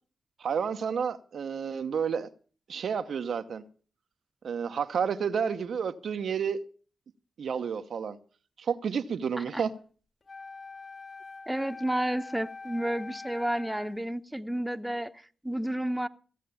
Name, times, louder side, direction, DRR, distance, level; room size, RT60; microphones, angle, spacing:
voice 1, 0.4-2.3 2.7-3.6 4.4-6.6 7.4-8.2 8.6-9.7, right 7 dB, 75° right, 0.9 m, -30 dB
Wind instrument woodwind instrument, 10.3-14.0, left 3 dB, 55° left, 3.7 m, -44 dB
voice 2, 11.5-16.1, right 1 dB, 10° right, 1.1 m, -31 dB
16.0 x 8.4 x 7.0 m
supercardioid pair, 40°, 0 cm